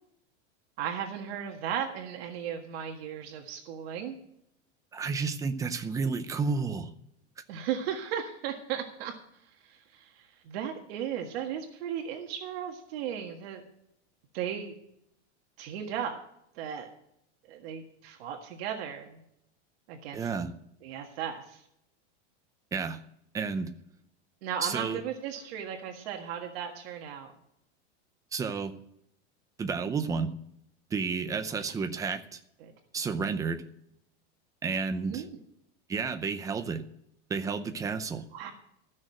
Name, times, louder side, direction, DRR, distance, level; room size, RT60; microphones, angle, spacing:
voice 1, 0.8-4.2 7.5-9.1 9.6-13.6 14.3-14.7 15.6-16.2 16.5-16.9 17.5-19.2 19.9-20.3 20.8-21.6 24.4-27.3 32.6-32.7 35.0-35.3 38.3-38.5, right 9 dB, 60° right, 3 dB, 1.7 m, -36 dB
voice 2, 4.9-6.9 20.1-20.5 22.7-23.0 23.3-23.7 24.6-25.0 28.3-28.7 29.6-30.3 30.9-32.4 32.9-33.6 34.6-35.2 35.9-36.8 37.3-38.3, right 5 dB, 10° right, 8 dB, 0.5 m, -31 dB
14.0 x 6.5 x 7.5 m, 0.76 s
supercardioid pair, 160°, 35 cm